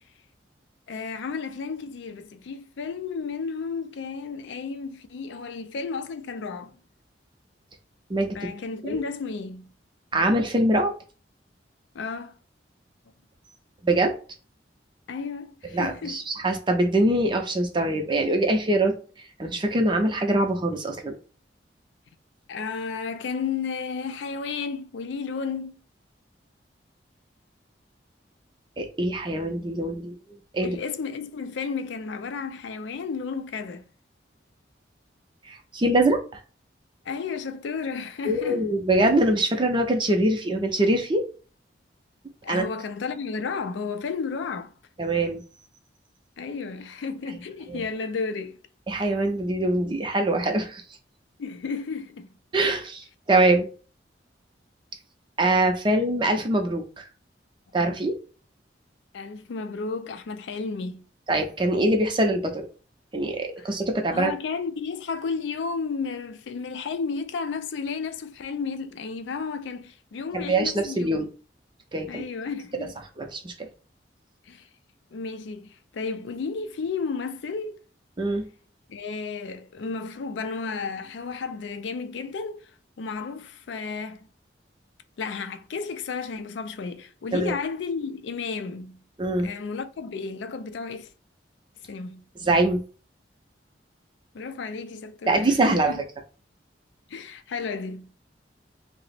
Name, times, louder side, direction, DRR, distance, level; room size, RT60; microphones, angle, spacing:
voice 1, 0.9-6.8 8.3-9.7 11.9-12.4 15.1-16.2 22.5-25.8 30.6-33.8 37.1-38.7 42.4-44.7 46.4-48.6 51.4-52.3 59.1-61.0 63.6-63.7 64.1-71.3 72.1-72.9 74.4-74.7 75.1-77.8 78.9-82.7 83.0-84.3 85.2-89.0 89.4-91.1 91.9-92.2 94.3-96.0 97.1-98.1, left 5 dB, 80° left, 0.4 m, -33 dB
voice 2, 10.1-10.9 13.8-14.1 15.7-19.0 19.4-21.2 28.8-30.1 30.5-30.8 35.5-36.2 38.3-41.2 42.5-42.7 45.0-45.4 47.7-47.8 48.9-50.8 52.5-53.7 55.4-57.0 57.7-58.1 61.3-62.7 63.1-64.3 70.3-71.3 71.9-72.2 73.2-73.7 78.2-78.4 87.3-87.5 89.2-89.5 92.4-92.8 95.3-95.9, right 1 dB, 25° right, 0.5 m, -23 dB
2.9 x 2.0 x 4.1 m
head